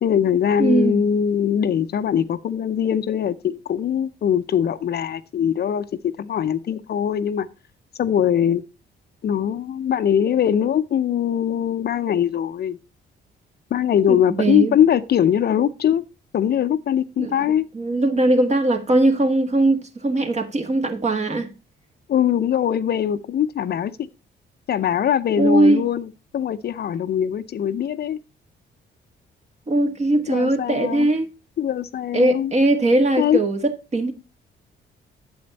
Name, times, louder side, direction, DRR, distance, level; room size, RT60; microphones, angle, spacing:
voice 1, 0.0-7.5 8.0-8.6 9.2-12.8 13.7-16.0 16.3-17.7 22.1-24.1 24.7-28.2 30.3-31.1 31.6-32.5 33.2-33.4, left 9 dB, 55° left, 0.6 m, -21 dB
voice 2, 0.6-1.0 14.1-14.7 17.2-17.3 17.7-21.5 25.4-25.8 29.7-31.3 32.1-34.1, right 2 dB, 35° right, 1.8 m, -20 dB
8.5 x 7.9 x 4.0 m
cardioid pair, 90°, 20 cm